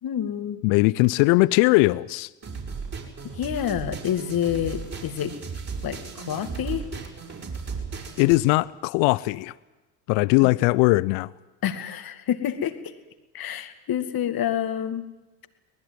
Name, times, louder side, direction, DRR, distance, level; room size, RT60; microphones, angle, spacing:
voice 1, 0.0-0.6 3.3-5.3 5.8-6.8 10.4-10.5 11.6-12.9 13.3-15.0, left 9 dB, 45° left, 2.3 m, -28 dB
voice 2, 0.6-2.3 8.2-9.5 10.1-11.3, left 22 dB, 60° left, 0.8 m, -20 dB
sound 1, 2.4-8.4, right 5 dB, 30° right, 6.1 m, -36 dB
23.0 x 19.5 x 9.5 m
hypercardioid pair, 65°, 49 cm